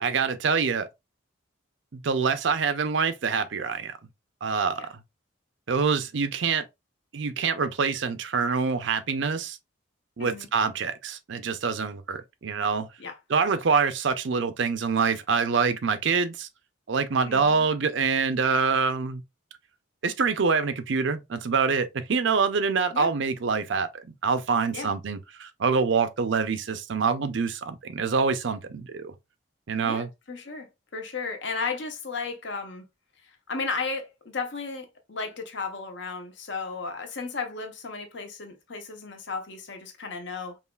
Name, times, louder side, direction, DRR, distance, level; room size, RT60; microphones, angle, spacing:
voice 1, 0.0-0.9 1.9-4.0 4.4-5.0 5.7-6.7 7.1-9.6 10.2-12.9 13.3-16.5 16.9-19.2 20.0-29.1 29.7-30.1, right 5 dB, 65° right, 0.5 m, -25 dB
voice 2, 17.2-17.7 22.9-23.1 24.7-24.9 29.8-32.9 33.5-40.6, left 4 dB, 60° left, 0.9 m, -34 dB
5.5 x 2.4 x 2.3 m
head